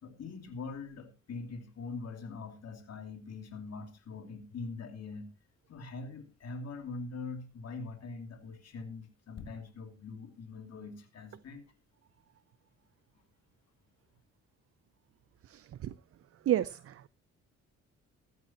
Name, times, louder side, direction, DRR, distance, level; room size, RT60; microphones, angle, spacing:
voice 1, 0.0-5.3 5.7-11.7, left 4 dB, 55° left, 2.9 m, -43 dB
voice 2, 15.5-15.9 16.5-17.1, right 12 dB, 50° right, 0.6 m, -31 dB
15.5 x 12.5 x 2.9 m
cardioid pair, 90°, 30 cm